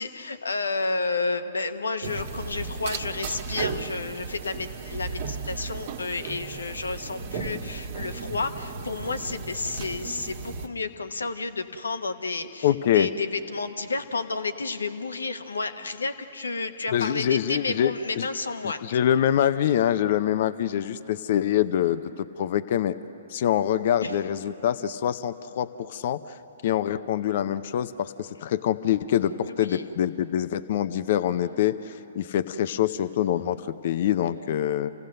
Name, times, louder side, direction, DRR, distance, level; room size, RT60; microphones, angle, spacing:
voice 1, 0.0-18.8 24.0-24.2 29.5-29.9, left 3 dB, 85° left, 9 dB, 1.1 m, -31 dB
sound 1, 2.0-10.7, right 5 dB, 50° right, 1.4 m, -35 dB
voice 2, 12.6-13.1 16.9-18.3 18.6-23.0 23.3-26.2 26.6-34.9, left 10 dB, 55° left, 13 dB, 0.6 m, -25 dB
28.5 x 16.5 x 6.6 m, 3.0 s
hypercardioid pair, 125°, 0 cm